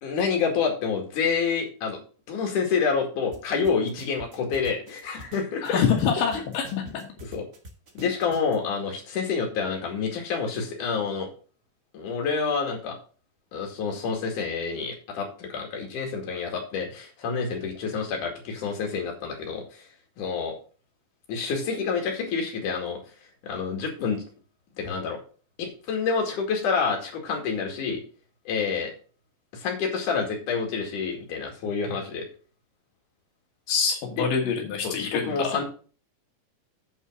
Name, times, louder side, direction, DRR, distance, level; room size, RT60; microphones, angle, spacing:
voice 1, 0.0-2.0 2.3-5.8 7.3-7.5 8.0-11.3 11.9-13.0 13.5-19.8 20.2-20.5 21.3-23.0 23.4-24.2 24.8-25.2 25.6-28.0 28.5-28.9 29.5-32.3 34.2-34.3 34.8-35.6, left 5 dB, 70° left, 1 dB, 3.6 m, -28 dB
sound 1, 3.3-3.4 3.6-6.0 6.3-8.6, equal, 50° right, 0.8 m, -44 dB
voice 2, 5.6-7.1 33.7-35.5, left 6 dB, 90° left, 0 dB, 3.2 m, -26 dB
8.4 x 5.6 x 6.1 m, 0.40 s
omnidirectional pair, 3.8 m